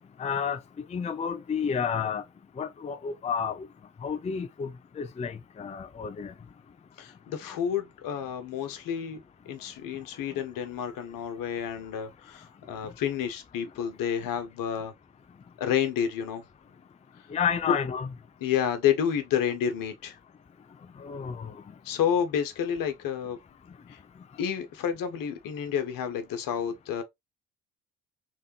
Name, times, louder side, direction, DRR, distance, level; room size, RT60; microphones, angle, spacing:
voice 1, 0.2-2.2 2.6-3.7 4.0-6.3 17.3-18.1 21.0-21.5, left 7 dB, 20° left, 0.5 m, -31 dB
voice 2, 7.0-14.9 15.6-16.4 18.4-20.2 21.8-23.4 23.9-24.0 24.4-27.0, left 8 dB, 65° left, 1.2 m, -30 dB
3.6 x 3.4 x 3.2 m
hypercardioid pair, 55°, 37 cm